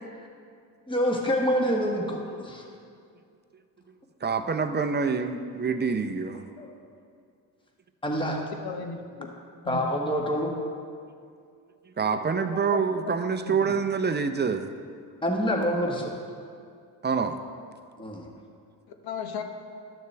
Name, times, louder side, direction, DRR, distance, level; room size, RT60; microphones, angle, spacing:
voice 1, 0.9-2.6 6.6-6.7 8.0-8.4 9.7-10.5 15.2-16.2 18.0-18.3, equal, 10° left, 0 dB, 1.5 m, -26 dB
voice 2, 4.2-6.5 12.0-14.7 17.0-17.4, right 5 dB, 25° right, 7 dB, 0.6 m, -26 dB
voice 3, 8.6-9.3 9.6-9.9 12.1-12.2 12.7-12.8 13.1-13.2 13.5-13.7 19.0-19.4, left 6 dB, 55° left, 5 dB, 1.1 m, -35 dB
12.5 x 6.6 x 3.4 m, 2.3 s
hypercardioid pair, 60°, 44 cm